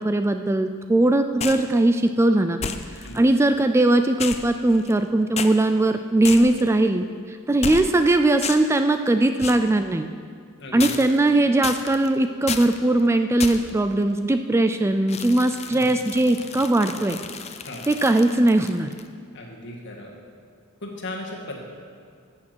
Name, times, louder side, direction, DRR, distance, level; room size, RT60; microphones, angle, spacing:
voice 1, 0.0-2.6 3.1-10.1 10.7-17.2 17.9-18.9, right 2 dB, 10° right, 8 dB, 0.3 m, -20 dB
sound 1, 1.4-1.7 2.6-3.2 4.2-5.0 5.4-5.5 6.2-6.7 7.6-8.1 8.4-8.8 9.4-9.7 10.8-11.3 11.6-12.1 12.5-12.8 13.4-13.8 15.1-19.1, left 6 dB, 30° left, 0.6 m, -32 dB
voice 2, 10.6-11.2 15.7-15.9 17.7-17.9 19.3-20.1 20.8-21.6, left 1 dB, 55° left, 0 dB, 2.0 m, -36 dB
14.5 x 7.3 x 6.2 m, 2.1 s
head